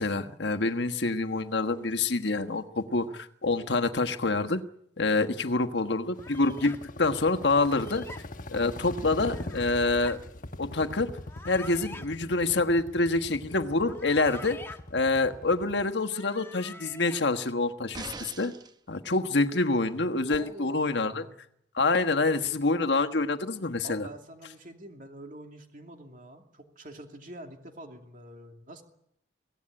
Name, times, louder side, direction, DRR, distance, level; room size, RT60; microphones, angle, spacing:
voice 1, 0.0-4.6 5.0-8.1 8.5-10.2 10.6-11.1 11.5-14.6 14.9-18.5 18.9-21.2 21.7-24.1, left 3 dB, 70° left, 1.4 m, -26 dB
sound 1, 6.2-15.8, left 1 dB, 45° left, 1.2 m, -41 dB
sound 2, 6.2-6.8 7.6-8.2 9.3-10.2 11.2-12.1 13.7-14.8 15.9-17.2, left 3 dB, 15° left, 1.4 m, -46 dB
sound 3, 17.9-18.8 20.3-20.4, right 3 dB, 25° right, 0.9 m, -41 dB
voice 2, 20.3-21.4 23.8-28.8, right 1 dB, 45° right, 2.7 m, -46 dB
24.0 x 17.5 x 10.0 m
head